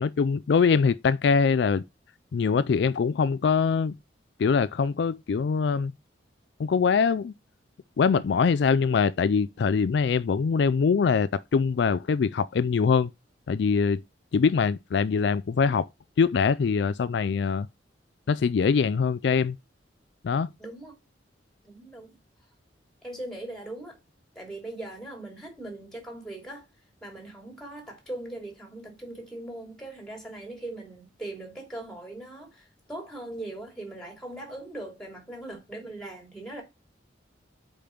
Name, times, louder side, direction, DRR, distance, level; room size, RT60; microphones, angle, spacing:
voice 1, 0.0-1.8 2.3-3.9 4.4-5.9 6.6-7.3 8.0-13.1 13.5-14.0 14.3-15.9 16.2-17.7 18.3-19.6 20.2-20.5, left 5 dB, 65° left, 0.4 m, -23 dB
voice 2, 20.6-20.9 21.6-22.2 23.0-24.0 24.3-26.7 27.0-36.6, right 1 dB, 5° left, 3.1 m, -40 dB
5.2 x 5.1 x 5.9 m
head